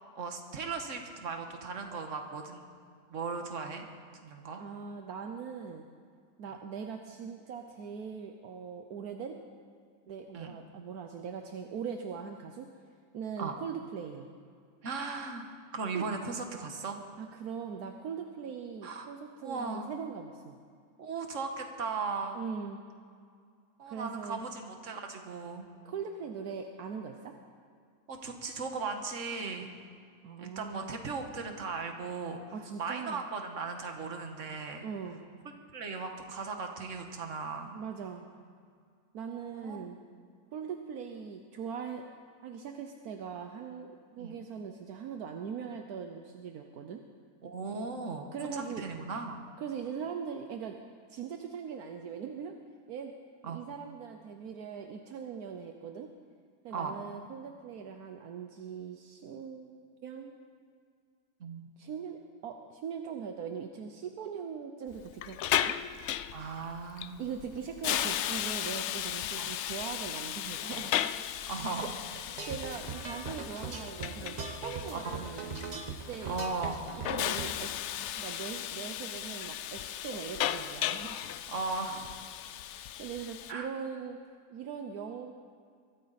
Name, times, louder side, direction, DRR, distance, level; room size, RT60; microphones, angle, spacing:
voice 1, 0.2-2.6 3.1-3.8 4.2-4.6 10.3-10.5 13.4-13.6 14.8-17.0 18.8-19.1 19.4-19.9 21.0-22.4 23.8-25.7 28.1-29.7 30.4-32.4 32.8-34.9 35.7-37.8 39.5-39.9 44.2-44.4 47.4-49.4 53.4-53.6 56.7-57.0 61.4-61.7 66.3-67.2 69.4-69.5 71.5-71.9 74.9-75.2 76.3-76.9 81.5-82.1 83.5-83.7, right 4 dB, 55° right, 4 dB, 1.7 m, -37 dB
voice 2, 4.6-5.9 6.4-9.4 10.1-12.7 13.1-14.3 15.9-16.0 17.2-20.6 22.3-22.8 23.9-24.4 25.8-27.3 30.2-31.0 32.5-33.2 34.8-35.2 37.7-38.3 39.1-40.0 40.5-42.0 42.4-47.0 48.3-48.9 49.6-50.8 51.1-52.5 52.9-53.1 53.4-56.1 56.6-60.4 61.8-65.8 67.2-71.3 71.7-76.4 77.1-77.7 78.2-81.2 82.4-82.6 83.0-84.2 84.5-85.3, right 6 dB, 75° right, 4 dB, 1.3 m, -41 dB
Hiss, 64.9-83.5, left 11 dB, 70° left, 0.7 m, -36 dB
sound 1, 72.3-77.6, right 4 dB, 30° right, 1.0 m, -40 dB
22.5 x 14.0 x 4.1 m, 2.2 s
omnidirectional pair, 1.6 m